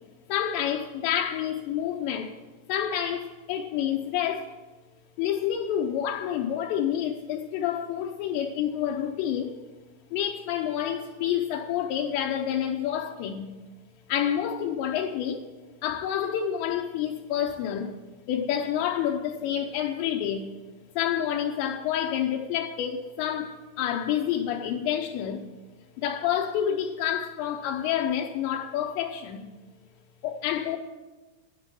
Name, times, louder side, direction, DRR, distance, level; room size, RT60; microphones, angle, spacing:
voice 1, 0.3-2.4 2.7-4.5 5.2-9.5 10.1-13.5 14.1-15.5 15.8-18.0 18.3-20.5 21.0-25.5 26.0-29.5 30.2-30.8, left 9 dB, 80° left, 2.9 m, -28 dB
12.5 x 9.7 x 7.5 m
omnidirectional pair, 5.2 m